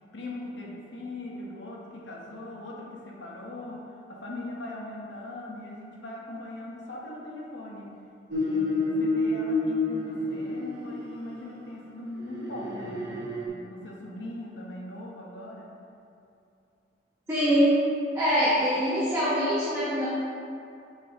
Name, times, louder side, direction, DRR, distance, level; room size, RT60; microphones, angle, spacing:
voice 1, 0.1-8.0 8.4-15.8, left 1 dB, 75° left, -3 dB, 1.2 m, -40 dB
sound 1, 8.3-11.2 12.2-13.5, left 2 dB, 60° right, 1.1 m, -29 dB
voice 2, 17.3-17.7 18.1-20.1, equal, 15° right, -11 dB, 1.1 m, -24 dB
8.4 x 4.7 x 3.0 m, 2.6 s
head